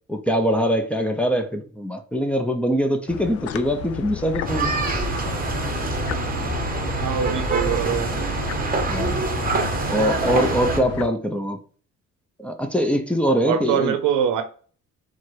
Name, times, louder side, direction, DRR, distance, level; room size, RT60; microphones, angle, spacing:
voice 1, 0.1-4.7 8.9-9.2 9.9-11.6 12.4-13.9, equal, 5° left, 0.7 m, -23 dB
sound 1, 3.1-11.1, left 11 dB, 55° left, 0.4 m, -32 dB
sound 2, 4.5-10.8, right 4 dB, 30° right, 0.9 m, -25 dB
voice 2, 7.0-8.3 13.4-14.4, right 8 dB, 80° right, 0.8 m, -23 dB
4.5 x 2.3 x 4.5 m
cardioid pair, 90°, 30 cm